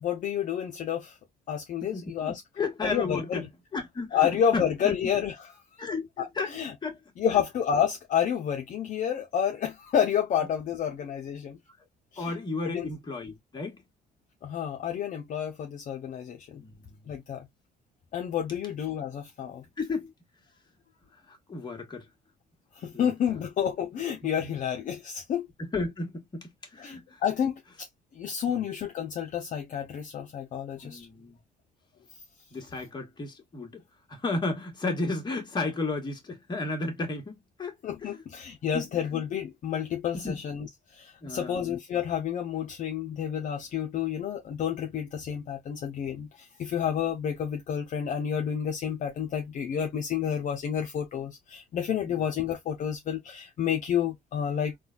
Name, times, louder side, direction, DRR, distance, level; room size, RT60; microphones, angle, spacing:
voice 1, 0.0-1.2 1.5-2.4 2.8-3.5 4.1-5.3 5.7-5.8 6.2-6.7 7.2-11.6 12.1-12.3 12.7-12.9 14.4-16.6 17.1-17.5 18.1-19.6 22.8-25.5 26.8-27.9 28.1-31.1 37.8-40.7 40.9-54.8, left 8 dB, 50° left, 0.7 m, -30 dB
voice 2, 1.8-3.4 3.7-4.9 5.8-6.1 6.3-6.5 6.8-7.0 12.2-13.8 16.6-17.0 19.8-20.1 21.3-22.0 22.9-23.4 24.4-24.5 25.6-27.2 28.5-28.6 30.8-31.4 32.5-33.8 34.1-37.7 38.0-38.2 38.7-39.0 40.2-40.4 41.2-41.7 52.1-52.2, left 3 dB, 25° left, 1.4 m, -33 dB
3.7 x 2.3 x 2.4 m
cardioid pair, 110°, 17 cm